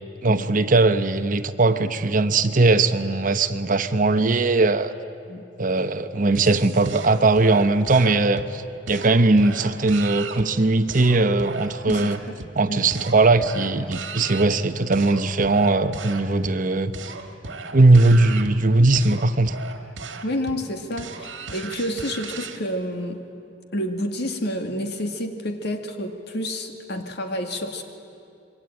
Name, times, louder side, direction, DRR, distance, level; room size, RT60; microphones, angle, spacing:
voice 1, 0.2-4.9 5.6-12.2 12.6-17.1 17.7-19.5, right 2 dB, 45° right, 10 dB, 0.9 m, -19 dB
sound 1, 6.3-22.6, right 3 dB, 85° right, 1.8 m, -37 dB
voice 2, 20.2-23.2 23.7-27.8, equal, 60° left, 5 dB, 2.2 m, -29 dB
26.5 x 23.5 x 9.0 m, 2.5 s
head